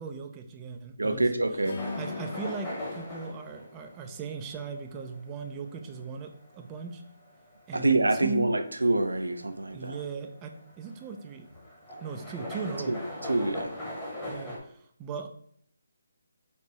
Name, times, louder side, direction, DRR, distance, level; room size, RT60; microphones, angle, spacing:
voice 1, 0.0-1.6 1.9-7.0 7.7-8.5 9.7-11.5 12.0-12.9 14.3-15.3, right 4 dB, 20° right, 4 dB, 0.5 m, -38 dB
voice 2, 1.0-1.8 7.7-10.0 12.9-13.0 13.3-13.7, right 2 dB, 80° right, 8 dB, 0.6 m, -26 dB
Acoustic guitar / Strum, 1.6-4.9, left 4 dB, 50° left, 0.8 m, -42 dB
sound 1, 1.8-14.6, left 1 dB, 15° left, 1.4 m, -41 dB
4.3 x 3.3 x 3.0 m, 0.63 s
figure-of-eight pair, 145°, 0 cm